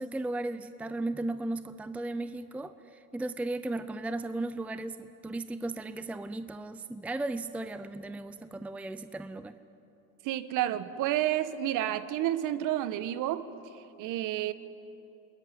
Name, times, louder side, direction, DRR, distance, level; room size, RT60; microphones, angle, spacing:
voice 1, 0.0-9.6, right 2 dB, 5° right, 12 dB, 0.7 m, -36 dB
voice 2, 10.2-13.5 13.7-14.5, right 13 dB, 45° right, 14 dB, 1.4 m, -30 dB
28.5 x 20.5 x 9.5 m, 2.9 s
hypercardioid pair, 95°, 42 cm